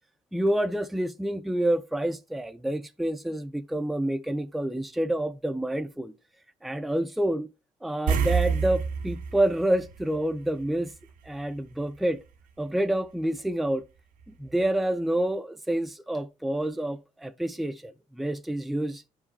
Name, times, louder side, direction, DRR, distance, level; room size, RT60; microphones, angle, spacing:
voice 1, 0.3-6.1 6.6-7.5 7.8-10.9 11.3-12.2 12.6-13.8 14.4-19.1, right 1 dB, ahead, 0.4 m, -28 dB
sound 1, 8.1-10.9 11.2-11.3 14.2-14.3 14.7-14.8, right 6 dB, 90° right, 2.0 m, -28 dB
10.5 x 4.9 x 3.2 m
cardioid pair, 130°, 14 cm